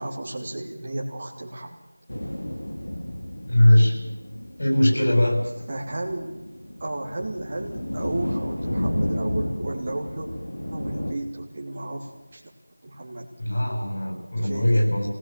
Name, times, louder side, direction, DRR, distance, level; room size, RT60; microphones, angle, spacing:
voice 1, 0.0-1.8 5.7-6.4 6.8-10.3 10.7-12.4 12.8-13.3 14.4-14.9, right 2 dB, 25° right, -2 dB, 3.0 m, -33 dB
sound 1, 2.1-11.1, equal, 75° left, 4.7 m, -32 dB
voice 2, 3.4-4.0 4.6-5.4 13.4-15.1, left 1 dB, 50° left, 0 dB, 7.8 m, -20 dB
26.5 x 18.5 x 7.7 m, 1.1 s
figure-of-eight pair, 175°, 0 cm